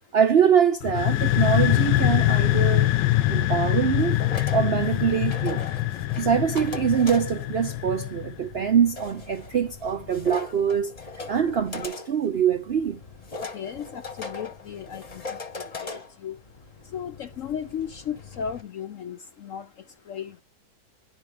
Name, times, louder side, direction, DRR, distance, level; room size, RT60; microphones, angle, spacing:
voice 1, 0.1-2.9 3.3-4.2 4.5-5.6 6.2-10.9 11.3-13.0, right 8 dB, 70° right, 0.6 m, -23 dB
sound 1, 0.8-8.5, left 15 dB, 80° left, 1.3 m, -23 dB
sound 2, 3.6-18.6, left 4 dB, 25° left, 0.9 m, -40 dB
voice 2, 13.5-15.9 16.2-16.4 16.9-19.7 20.1-20.4, left 8 dB, 65° left, 0.8 m, -35 dB
11.0 x 5.0 x 3.3 m
omnidirectional pair, 1.9 m